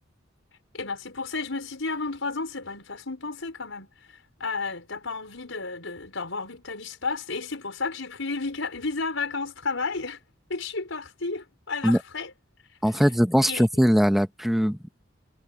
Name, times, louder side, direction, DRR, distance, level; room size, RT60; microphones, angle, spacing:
voice 1, 0.7-3.9 4.4-10.2 10.5-12.3 12.8-13.0 13.4-13.8, left 4 dB, 85° left, 5.0 m, -32 dB
voice 2, 12.8-14.8, equal, ahead, 0.8 m, -21 dB
head